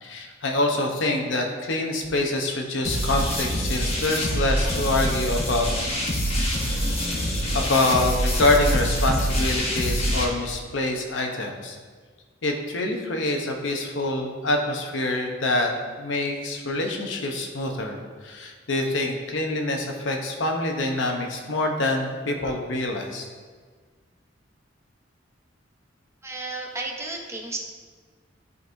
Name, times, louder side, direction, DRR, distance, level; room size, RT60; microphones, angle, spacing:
voice 1, 0.0-5.7 7.5-11.8 12.4-15.7 16.0-18.0 18.2-23.3, left 2 dB, 75° left, 2 dB, 0.8 m, -25 dB
sound 1, 2.8-10.2, equal, 35° left, 1.1 m, -25 dB
voice 2, 26.2-27.6, right 2 dB, 15° right, 0 dB, 0.7 m, -33 dB
10.5 x 4.0 x 2.6 m, 1.5 s
head